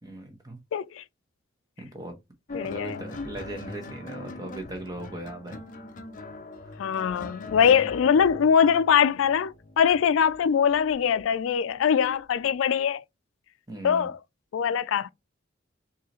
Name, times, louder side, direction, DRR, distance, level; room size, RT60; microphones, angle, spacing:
voice 1, 0.0-0.6 1.8-2.2 2.6-5.6 6.6-6.7 13.7-14.1, right 1 dB, 20° right, 1.2 m, -38 dB
voice 2, 0.7-1.0 2.5-3.0 6.8-13.0 13.8-14.2 14.5-15.1, left 7 dB, 90° left, 0.3 m, -22 dB
sound 1, 2.5-11.2 12.2-12.5, left 2 dB, 40° left, 0.6 m, -41 dB
4.8 x 2.8 x 2.9 m
head